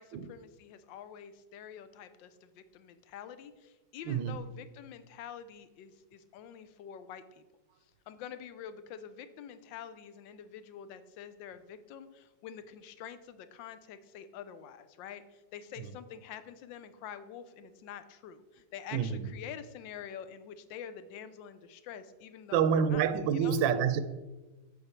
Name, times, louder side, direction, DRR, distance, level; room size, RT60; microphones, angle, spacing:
voice 1, 0.0-7.4 8.1-23.0 23.3-23.6, left 8 dB, 85° left, 1.3 m, -47 dB
voice 2, 4.1-4.4 18.9-19.3 22.5-24.0, right 7 dB, 85° right, 1.3 m, -27 dB
7.8 x 5.4 x 4.4 m
omnidirectional pair, 2.0 m